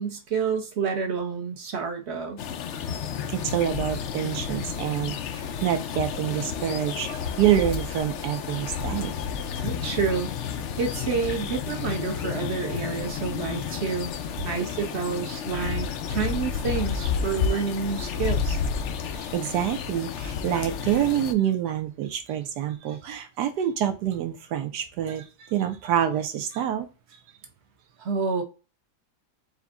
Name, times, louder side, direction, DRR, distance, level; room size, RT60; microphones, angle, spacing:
voice 1, 0.0-2.4 9.6-14.1 14.4-18.6 28.0-28.4, right 5 dB, 50° right, 5 dB, 0.9 m, -29 dB
sound 1, 2.4-21.3, left 7 dB, 85° left, 0.6 m, -31 dB
voice 2, 3.3-9.1 19.1-26.9, right 10 dB, 80° right, 7 dB, 1.2 m, -27 dB
5.0 x 2.2 x 3.5 m, 0.31 s
omnidirectional pair, 1.8 m